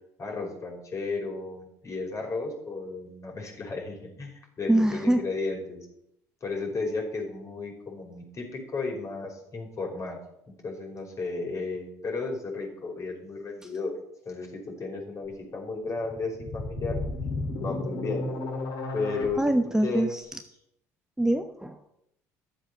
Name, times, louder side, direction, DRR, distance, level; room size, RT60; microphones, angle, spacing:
voice 1, 0.2-5.8 6.4-10.2 10.6-13.9 14.3-17.0 17.6-18.3 18.9-19.4 19.8-20.1, left 3 dB, 40° left, 0 dB, 5.2 m, -34 dB
voice 2, 4.7-5.2 19.4-20.2 21.2-21.9, right 1 dB, 5° right, 7 dB, 1.0 m, -24 dB
sound 1, 16.0-19.3, left 3 dB, 65° left, 3.7 m, -32 dB
12.5 x 7.5 x 6.7 m, 0.78 s
hypercardioid pair, 70°, 8 cm